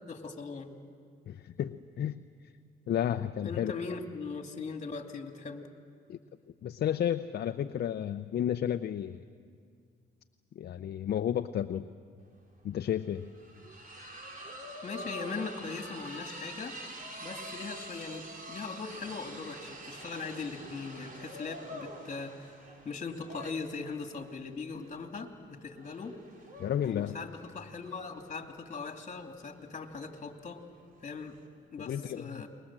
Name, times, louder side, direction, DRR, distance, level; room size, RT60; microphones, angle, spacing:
voice 1, 0.1-0.8 3.4-5.7 14.8-16.8 17.2-22.5 22.8-26.2 26.8-30.6 31.0-31.4 31.7-32.5, left 4 dB, 35° left, 4 dB, 2.7 m, -40 dB
voice 2, 1.3-2.2 2.9-3.7 6.1-6.2 6.6-9.2 10.5-11.9 12.6-13.3 26.6-27.1 31.8-32.4, left 10 dB, 55° left, 8 dB, 0.7 m, -32 dB
sound 1, 12.3-12.4 12.6-31.5, right 1 dB, 45° right, 4.4 m, -46 dB
29.5 x 21.5 x 7.5 m, 2.2 s
cardioid pair, 90°, 20 cm